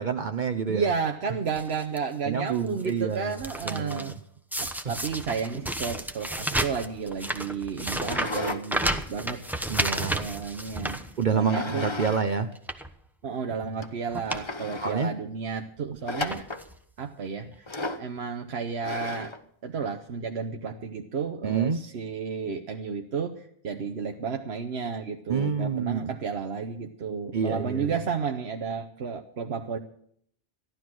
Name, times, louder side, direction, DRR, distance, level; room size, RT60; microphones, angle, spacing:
voice 1, 0.0-0.9 2.3-3.4 3.6-4.1 8.9-9.0 9.7-10.2 11.2-12.5 14.8-15.1 21.4-21.8 25.3-26.1 27.3-27.9, right 6 dB, 50° right, 1.0 m, -28 dB
voice 2, 0.7-4.1 4.6-9.4 10.1-11.0 11.3-11.9 13.2-16.5 17.0-17.6 18.0-19.3 19.6-29.8, right 5 dB, 90° right, 1.3 m, -32 dB
sound 1, 1.5-2.0 2.5-4.1 4.5-11.6 12.0-12.1 12.5-12.9 13.7-13.8 14.1-14.5 14.8-14.9 15.8-15.9 16.3-16.8 17.5-17.6 17.8-17.9, right 1 dB, ahead, 0.9 m, -32 dB
sound 2, 8.0-8.6 9.0-10.4 11.4-12.2 12.5-12.6 13.3-13.4 13.8-13.9 14.3-15.0 16.1-16.7 17.7-18.1 18.8-19.4, left 2 dB, 30° left, 1.0 m, -34 dB
15.0 x 12.0 x 6.1 m
omnidirectional pair, 1.1 m